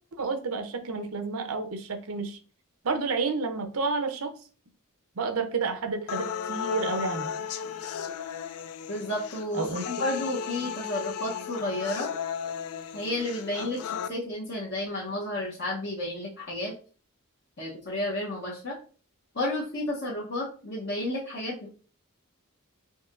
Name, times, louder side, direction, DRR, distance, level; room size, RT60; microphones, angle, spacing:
voice 1, 0.2-2.4 2.8-4.3 5.2-7.3 9.5-9.9, right 4 dB, 80° right, 7 dB, 0.7 m, -30 dB
sound 1, 6.1-14.1, left 8 dB, 80° left, 0.4 m, -35 dB
voice 2, 8.9-12.1 12.9-16.8 17.6-18.8 19.3-21.7, left 1 dB, 50° left, -6 dB, 0.9 m, -32 dB
5.5 x 2.7 x 2.5 m, 0.39 s
head